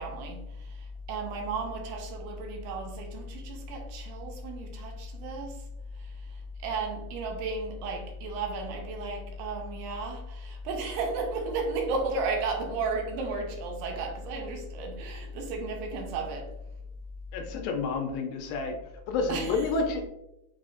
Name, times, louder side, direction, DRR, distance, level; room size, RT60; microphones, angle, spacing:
voice 1, 0.0-5.6 6.0-16.5 19.3-19.9, right 3 dB, 90° right, 2 dB, 2.5 m, -34 dB
voice 2, 17.3-18.8 19.1-20.1, left 4 dB, 80° left, 3 dB, 2.1 m, -29 dB
6.6 x 2.4 x 2.4 m, 0.88 s
omnidirectional pair, 4.2 m